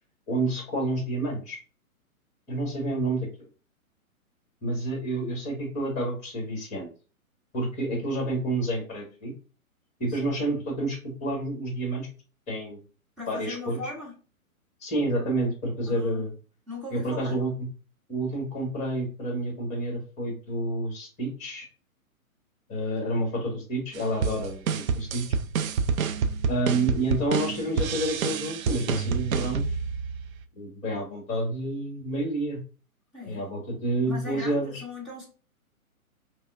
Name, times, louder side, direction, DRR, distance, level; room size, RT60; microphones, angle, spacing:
voice 1, 0.3-1.6 2.5-3.5 4.6-6.9 7.5-9.3 10.0-12.1 12.5-12.8 13.3-13.8 14.8-16.3 16.9-17.7 18.1-21.6 22.7-25.2 26.5-29.7 30.6-32.6 33.3-34.8, right 1 dB, 15° left, 0 dB, 1.3 m, -29 dB
voice 2, 13.2-14.2 15.9-16.2 16.7-17.4 33.1-33.5 34.0-35.2, left 3 dB, ahead, -8 dB, 1.1 m, -39 dB
sound 1, 23.9-30.4, right 6 dB, 70° right, 0.5 m, -28 dB
5.3 x 2.1 x 2.4 m, 0.36 s
hypercardioid pair, 140°, 43 cm